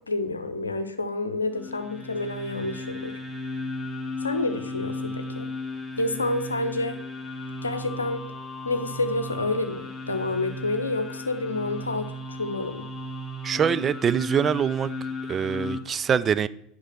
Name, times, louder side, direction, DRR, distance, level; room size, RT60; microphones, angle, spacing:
voice 1, 0.0-3.2 4.2-5.5 6.0-7.0 7.6-8.3 8.6-12.9, left 2 dB, 80° left, 0.8 m, -29 dB
sound 1, 1.5-15.8, left 1 dB, 5° left, 1.8 m, -35 dB
voice 2, 13.4-14.9 15.3-16.5, right 7 dB, 30° right, 0.4 m, -24 dB
9.6 x 5.4 x 6.2 m
figure-of-eight pair, 75°, 0 cm